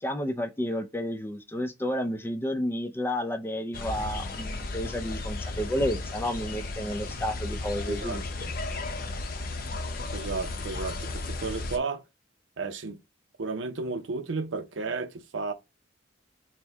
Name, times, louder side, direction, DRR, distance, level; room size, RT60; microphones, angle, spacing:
voice 1, 0.0-8.5, equal, 10° left, 0.4 m, -31 dB
sound 1, 3.7-11.8, left 2 dB, 50° left, 0.7 m, -34 dB
voice 2, 7.9-8.6 10.1-12.0 12.6-13.0 13.4-15.5, right 4 dB, 75° right, 0.6 m, -33 dB
4.4 x 2.1 x 3.3 m
head